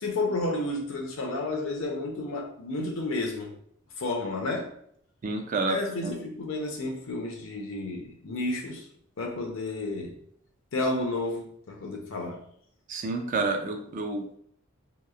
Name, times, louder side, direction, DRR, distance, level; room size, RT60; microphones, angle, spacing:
voice 1, 0.0-3.5 4.0-4.7 5.7-8.8 9.2-10.2 10.7-12.4, left 2 dB, 70° left, 1 dB, 0.6 m, -31 dB
voice 2, 5.2-6.1 12.9-14.4, right 3 dB, 40° right, 4 dB, 0.3 m, -30 dB
2.8 x 2.0 x 2.3 m, 0.66 s
head